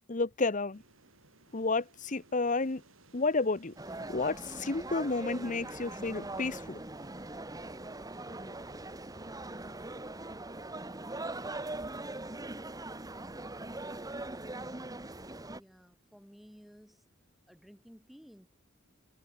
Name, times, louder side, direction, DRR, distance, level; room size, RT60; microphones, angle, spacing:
voice 1, 0.1-0.8 1.5-2.8 3.1-3.7 4.1-6.8, left 3 dB, 35° left, 0.9 m, -31 dB
sound 1, 0.7-10.0, right 2 dB, 70° right, 7.2 m, -62 dB
sound 2, 3.8-15.6, right 2 dB, 15° right, 1.6 m, -41 dB
voice 2, 15.5-17.0 17.5-18.5, equal, ahead, 4.2 m, -55 dB
head